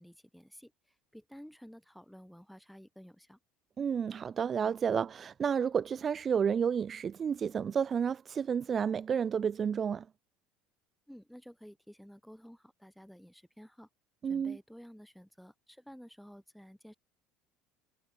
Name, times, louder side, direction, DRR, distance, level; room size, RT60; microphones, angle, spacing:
voice 1, 0.0-3.4 11.1-13.9 14.3-17.0, equal, ahead, 4.7 m, -53 dB
voice 2, 3.8-10.0 14.2-14.6, right 7 dB, 30° right, 0.3 m, -31 dB
cardioid pair, 135°, 0 cm